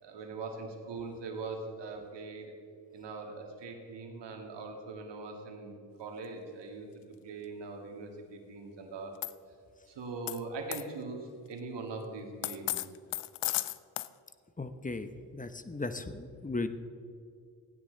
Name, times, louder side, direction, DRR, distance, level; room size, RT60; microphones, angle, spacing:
voice 1, 0.0-2.5 2.9-6.9 7.2-9.2 9.9-12.8, right 3 dB, 70° right, 3 dB, 2.2 m, -41 dB
sound 1, 9.2-9.3 10.3-10.4 10.7-10.8 12.4-14.1, left 16 dB, 70° left, 0.6 m, -33 dB
voice 2, 14.6-16.7, left 3 dB, 20° left, 10 dB, 1.0 m, -37 dB
16.0 x 9.6 x 4.0 m, 2.3 s
supercardioid pair, 45°, 44 cm